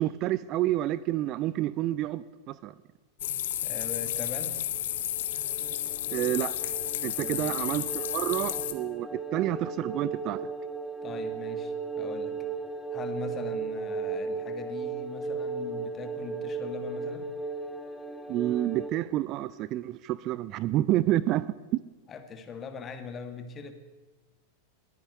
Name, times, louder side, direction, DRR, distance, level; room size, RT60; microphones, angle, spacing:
voice 1, 0.0-2.7 6.1-6.5 7.0-10.5 18.3-21.8, right 14 dB, 35° right, 18 dB, 0.4 m, -29 dB
sound 1, 3.2-8.7, left 12 dB, 55° left, 1.1 m, -32 dB
voice 2, 3.6-4.5 7.2-7.6 11.0-12.4 12.9-17.3 22.1-23.7, left 5 dB, 25° left, 8 dB, 1.8 m, -41 dB
sound 2, 4.8-18.9, right 4 dB, 5° left, 1.2 m, -36 dB
20.5 x 9.8 x 7.1 m, 1.2 s
figure-of-eight pair, 90°, 0 cm